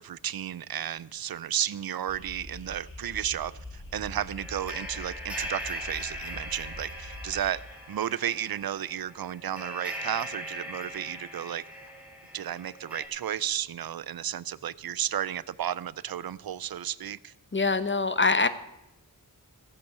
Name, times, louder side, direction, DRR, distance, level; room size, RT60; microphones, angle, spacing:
voice 1, 0.0-7.6 7.9-11.6 12.3-17.3, right 10 dB, 80° right, 20 dB, 0.5 m, -33 dB
sound 1, 2.1-7.5, left 1 dB, 70° left, 6.0 m, -44 dB
sound 2, 4.4-13.1, equal, 5° right, 2.9 m, -40 dB
voice 2, 17.5-18.5, left 3 dB, 30° left, 12 dB, 1.0 m, -24 dB
15.0 x 8.7 x 6.7 m, 0.93 s
wide cardioid pair, 50°, 36 cm